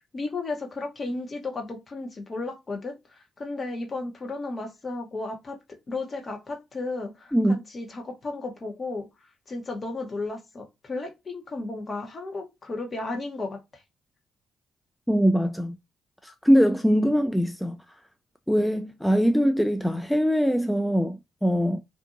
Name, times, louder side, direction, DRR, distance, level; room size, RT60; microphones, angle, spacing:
voice 1, 0.1-9.1 9.5-13.8, left 3 dB, 45° left, 0.9 m, -34 dB
voice 2, 7.3-7.6 15.1-15.8 16.2-17.8 18.5-21.8, equal, 5° left, 0.3 m, -22 dB
2.6 x 2.5 x 2.5 m
supercardioid pair, 55°, 0 cm